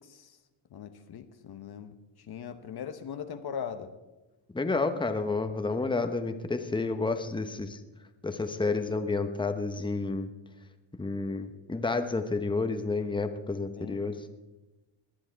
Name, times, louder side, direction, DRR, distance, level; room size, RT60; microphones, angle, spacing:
voice 1, 0.7-1.9 2.3-3.9 13.8-14.0, left 7 dB, 55° left, 9 dB, 1.0 m, -39 dB
voice 2, 4.5-7.8 8.2-10.3 11.0-14.2, left 3 dB, 10° left, 7 dB, 1.1 m, -30 dB
19.0 x 10.5 x 4.6 m, 1.1 s
cardioid pair, 90°, 47 cm